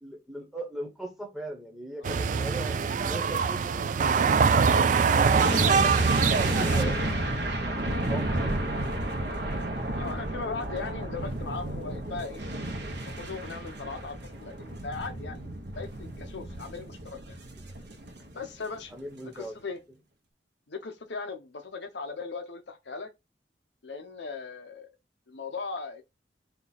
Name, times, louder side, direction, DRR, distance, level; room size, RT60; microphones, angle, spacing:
voice 1, 0.0-2.8 3.0-6.0 6.3-7.8 8.1-8.7 16.4-16.6 18.9-19.6, right 1 dB, ahead, 1.2 m, -40 dB
sound 1, 2.0-6.8, right 5 dB, 45° right, 0.3 m, -23 dB
sound 2, 5.3-18.5 18.8-18.9, right 1 dB, 75° right, 0.9 m, -31 dB
voice 2, 6.6-7.1 9.9-12.4 13.1-17.4 18.3-18.9 19.3-19.8 20.7-23.1 23.8-24.9 25.3-26.0, left 4 dB, 80° left, 0.8 m, -38 dB
4.5 x 2.4 x 4.1 m
head